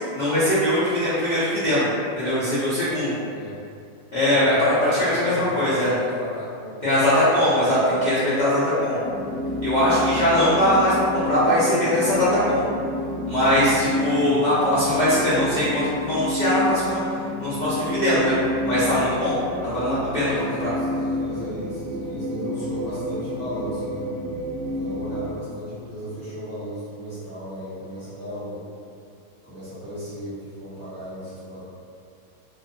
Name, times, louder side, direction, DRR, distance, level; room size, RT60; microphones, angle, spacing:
voice 1, 0.2-1.9 2.2-3.2 4.1-5.9 6.8-9.0 9.6-12.6 13.3-17.0 17.4-18.3 18.6-19.3 19.6-20.7, left 1 dB, 70° left, -12 dB, 0.4 m, -21 dB
voice 2, 3.3-3.6 4.2-6.9 7.2-8.1 20.4-24.1 24.7-28.6 29.4-31.6, equal, 10° left, -14 dB, 0.9 m, -35 dB
sound 1, 9.0-25.4, left 1 dB, 70° right, 0.9 m, -29 dB
2.4 x 2.2 x 2.5 m, 2.4 s
omnidirectional pair, 1.6 m